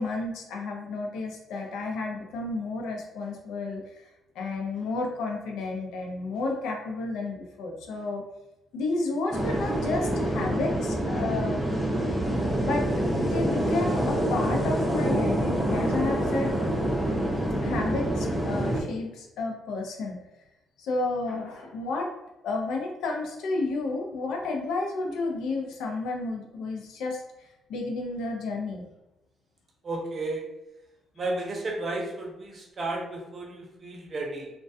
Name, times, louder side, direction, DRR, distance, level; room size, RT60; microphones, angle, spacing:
voice 1, 0.0-4.0 4.4-8.2 8.7-11.6 12.6-12.9 13.2-16.6 17.6-20.2 20.8-22.1 22.4-27.2 27.7-28.9, left 3 dB, 85° left, 1 dB, 0.5 m, -31 dB
sound 1, 9.3-18.8, right 1 dB, ahead, 0.6 m, -26 dB
voice 2, 29.8-30.5 31.1-34.5, right 2 dB, 40° right, 0 dB, 0.6 m, -33 dB
2.2 x 2.1 x 2.6 m, 0.97 s
cardioid pair, 90°, 0 cm